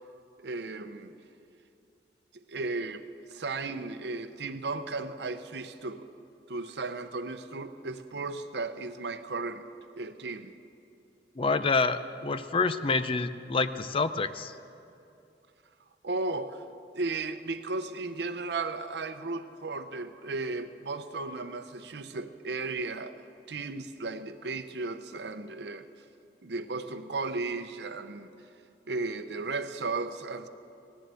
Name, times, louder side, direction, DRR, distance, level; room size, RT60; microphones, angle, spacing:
voice 1, 0.4-1.1 2.3-6.1 6.5-9.7 10.0-10.5 16.0-16.6 16.9-25.9 26.4-28.3 28.9-30.5, right 3 dB, 65° right, 10 dB, 0.7 m, -35 dB
voice 2, 11.4-14.5, left 4 dB, 30° left, 12 dB, 0.4 m, -27 dB
18.0 x 7.6 x 8.2 m, 2.7 s
head